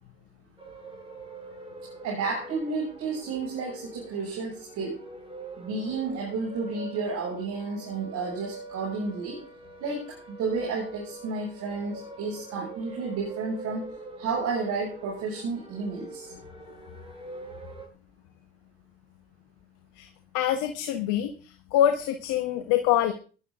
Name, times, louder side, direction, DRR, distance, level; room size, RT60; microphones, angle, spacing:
sound 1, 0.6-17.9, right 2 dB, 15° right, 7.1 m, -44 dB
voice 1, 2.0-5.0 5.6-9.4 9.8-13.9 14.2-16.3, right 4 dB, 60° right, -3 dB, 6.8 m, -31 dB
voice 2, 20.3-23.1, left 11 dB, 70° left, 7 dB, 1.5 m, -25 dB
19.0 x 12.0 x 3.8 m, 0.38 s
hypercardioid pair, 60°, 32 cm